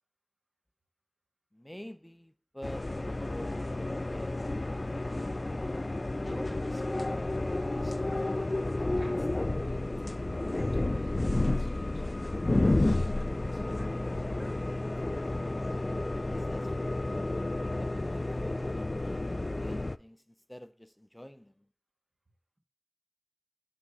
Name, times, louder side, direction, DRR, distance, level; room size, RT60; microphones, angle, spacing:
voice 1, 1.5-4.8 16.3-17.0 17.6-20.2 20.5-21.5, equal, 20° left, 0.6 m, -48 dB
sound 1, 2.6-20.0, left 2 dB, 60° left, 0.3 m, -31 dB
voice 2, 6.2-8.3 8.9-10.1 10.4-14.8, right 1 dB, 55° right, 1.7 m, -51 dB
9.4 x 3.5 x 5.4 m
wide cardioid pair, 40°, 0 cm